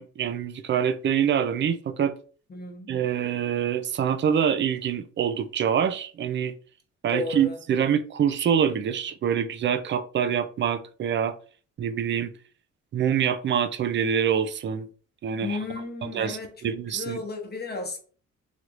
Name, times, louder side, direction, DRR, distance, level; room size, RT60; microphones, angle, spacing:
voice 1, 0.0-2.1 2.9-6.5 7.0-11.3 11.8-12.3 12.9-14.9 15.2-15.6 16.0-17.2, right 8 dB, 40° right, 0.4 m, -25 dB
voice 2, 2.5-2.9 7.1-7.6 15.4-18.0, left 3 dB, 35° left, 0.9 m, -34 dB
3.2 x 2.9 x 2.4 m
cardioid pair, 90°, 30 cm